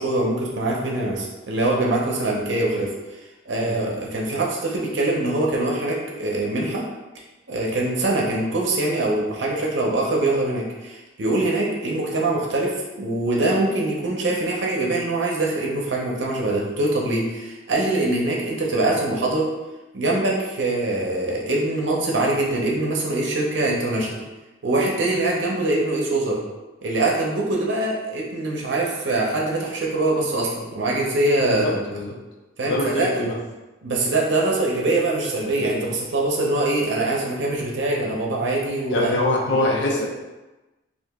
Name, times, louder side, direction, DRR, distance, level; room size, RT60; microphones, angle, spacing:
voice 1, 0.0-2.9 3.5-6.8 7.5-19.5 19.9-24.2 24.6-26.4 26.8-31.8 32.6-33.3 33.8-39.1 39.5-40.0, right 2 dB, 65° right, -3 dB, 0.6 m, -23 dB
voice 2, 31.4-32.2 32.7-33.4 38.9-40.1, left 2 dB, 60° left, -1 dB, 0.6 m, -24 dB
2.8 x 2.5 x 3.5 m, 1.1 s
head